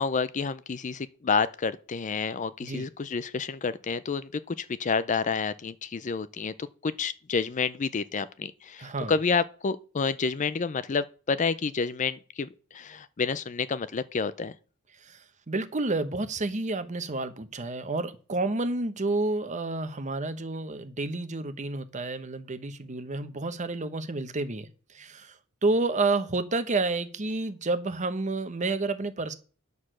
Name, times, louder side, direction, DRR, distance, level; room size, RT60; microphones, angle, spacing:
voice 1, 0.0-14.5, left 5 dB, 35° left, 0.4 m, -29 dB
voice 2, 8.8-9.1 15.1-15.2 15.5-24.7 24.9-25.3 25.6-29.4, right 2 dB, 35° right, 0.9 m, -30 dB
9.6 x 6.7 x 6.2 m
head